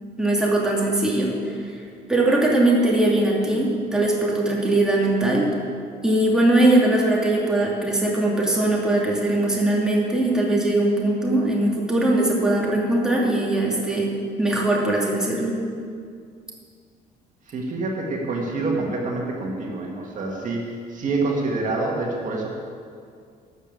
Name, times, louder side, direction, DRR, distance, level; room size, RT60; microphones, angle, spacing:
voice 1, 0.2-1.5 2.1-5.5 6.0-14.1 14.4-15.5, right 1 dB, 5° right, -4 dB, 2.6 m, -20 dB
voice 2, 17.5-20.6 20.9-22.5, right 3 dB, 50° right, -1 dB, 2.0 m, -26 dB
12.5 x 6.8 x 8.5 m, 2.3 s
cardioid pair, 110°, 17 cm